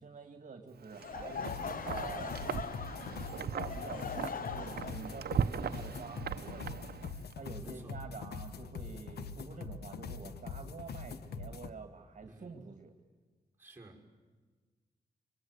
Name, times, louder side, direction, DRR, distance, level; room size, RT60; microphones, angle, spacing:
voice 1, 0.0-2.4 3.4-12.9, right 4 dB, 50° right, 6 dB, 1.9 m, -48 dB
Wind, 0.8-7.3, right 8 dB, 75° right, 0.8 m, -39 dB
Laughter / Crowd, 0.9-6.9, left 7 dB, 60° left, 0.7 m, -42 dB
sound 1, 1.4-11.7, left 5 dB, 85° left, 1.1 m, -43 dB
voice 2, 7.6-8.0 12.3-12.6 13.6-14.1, right 2 dB, 15° right, -1 dB, 5.7 m, -54 dB
24.5 x 23.0 x 8.0 m, 1.4 s
wide cardioid pair, 95°, 16 cm